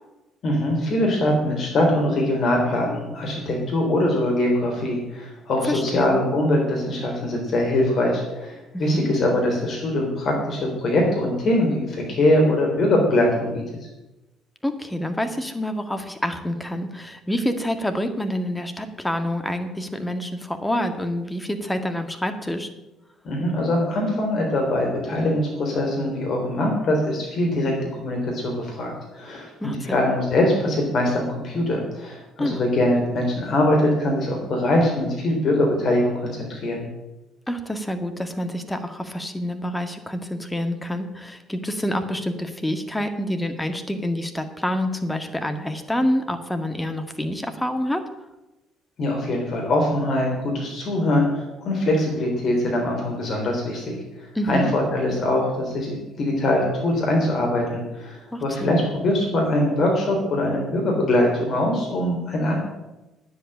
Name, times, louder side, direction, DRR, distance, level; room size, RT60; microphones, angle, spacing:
voice 1, 0.4-13.6 23.2-36.9 49.0-62.5, left 1 dB, 55° left, 0 dB, 3.4 m, -22 dB
voice 2, 5.7-6.1 8.7-9.1 14.6-22.7 29.6-30.0 32.4-32.6 37.5-48.1 54.4-54.7 58.3-58.7, left 1 dB, 10° left, 6 dB, 1.9 m, -27 dB
9.8 x 8.1 x 8.7 m, 1.0 s
hypercardioid pair, 55°, 0 cm